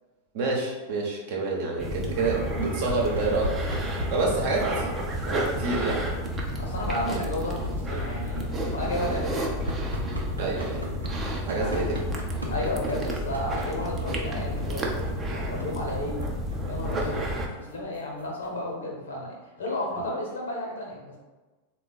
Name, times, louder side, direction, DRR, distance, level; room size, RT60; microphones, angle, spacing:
voice 1, 0.3-3.5 4.1-6.1 10.4-10.8 11.4-12.0 13.7-13.8 17.0-17.2 20.0-20.1, right 3 dB, 50° right, -1 dB, 0.9 m, -28 dB
sound 1, 1.8-17.5, equal, 20° right, 0.6 m, -31 dB
sound 2, 2.5-18.7, equal, 80° right, 0.6 m, -42 dB
voice 2, 6.6-9.7 11.5-11.8 12.5-14.9 15.3-16.2 16.7-17.2 17.6-21.2, left 1 dB, 65° left, -2 dB, 1.0 m, -33 dB
3.6 x 2.2 x 4.1 m, 1.2 s
figure-of-eight pair, 90°, 0 cm